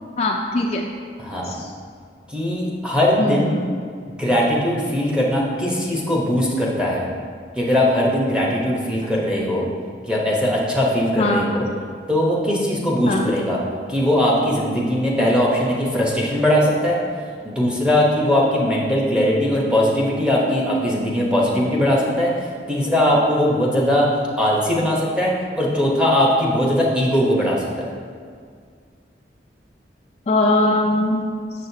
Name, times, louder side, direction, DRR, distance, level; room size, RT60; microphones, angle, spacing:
voice 1, 0.2-0.9 1.4-1.7 3.2-3.4 11.2-11.4 13.0-13.3 30.3-31.2, left 2 dB, 35° left, 1 dB, 0.3 m, -20 dB
voice 2, 1.2-1.5 2.3-3.7 4.1-7.1 7.6-9.7 10.1-11.6 12.1-13.6 13.9-17.0 17.4-24.1 24.4-27.6, left 1 dB, 5° right, -4 dB, 0.9 m, -20 dB
6.8 x 6.3 x 2.8 m, 2.1 s
head